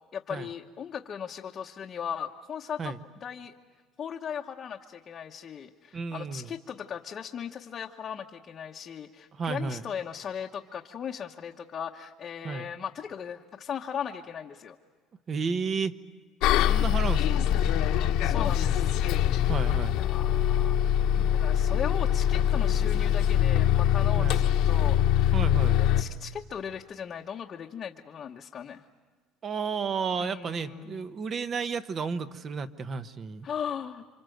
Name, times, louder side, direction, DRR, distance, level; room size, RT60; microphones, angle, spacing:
voice 1, 0.1-2.9 3.2-3.5 4.0-14.7 18.2-19.0 19.9-20.8 21.2-25.3 25.6-28.9 30.2-31.1 33.4-34.0, left 8 dB, 30° left, -1 dB, 1.0 m, -38 dB
voice 2, 5.9-6.5 9.3-9.8 12.4-12.7 15.3-15.9 16.7-17.5 19.5-20.0 24.2-24.4 25.3-25.8 29.4-33.5, right 5 dB, 30° right, 12 dB, 1.0 m, -32 dB
Bus, 16.4-26.0, left 10 dB, 65° left, 1.2 m, -23 dB
29.0 x 26.0 x 7.9 m, 1.5 s
cardioid pair, 155°, 0 cm